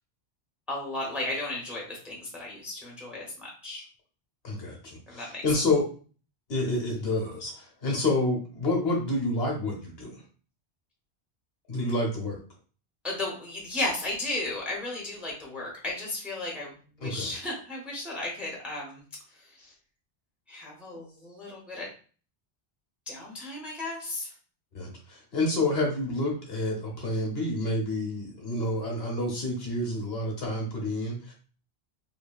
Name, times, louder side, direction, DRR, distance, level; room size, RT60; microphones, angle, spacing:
voice 1, 0.7-3.8 5.1-5.4 13.0-19.0 19.3-19.7 20.5-21.9 23.1-24.3, left 2 dB, ahead, -2 dB, 0.7 m, -35 dB
voice 2, 4.4-5.8 6.5-10.2 11.7-12.4 17.0-17.3 24.7-31.3, left 2 dB, 70° left, 0 dB, 1.1 m, -29 dB
2.8 x 2.7 x 2.3 m, 0.39 s
omnidirectional pair, 1.1 m